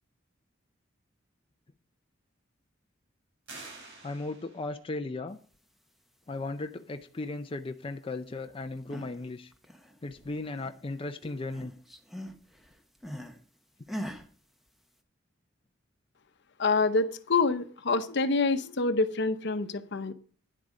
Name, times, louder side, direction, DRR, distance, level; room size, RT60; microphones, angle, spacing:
sound 1, 3.5-4.8, right 3 dB, 60° right, 5.1 m, -47 dB
voice 1, 4.0-5.4 6.3-9.5 10.0-11.7, left 2 dB, 25° left, 7 dB, 0.5 m, -36 dB
sound 2, 8.6-9.2 9.5-10.9 11.2-13.4 13.9-14.3, equal, ahead, 1.1 m, -41 dB
voice 2, 16.6-20.1, left 3 dB, 60° left, 10 dB, 0.8 m, -26 dB
10.0 x 7.9 x 5.0 m, 0.42 s
head